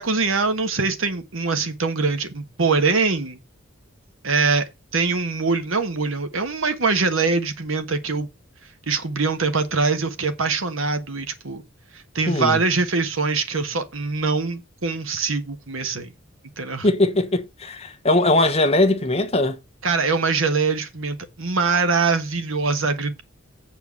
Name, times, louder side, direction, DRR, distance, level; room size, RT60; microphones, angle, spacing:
voice 1, 0.0-3.4 4.2-4.6 4.9-8.3 8.9-11.6 11.9-16.1 16.6-16.9 19.8-23.2, right 4 dB, 80° right, 1.4 m, -23 dB
voice 2, 12.3-12.6 16.8-19.6, left 2 dB, 30° left, 1.1 m, -20 dB
7.9 x 4.6 x 7.1 m
head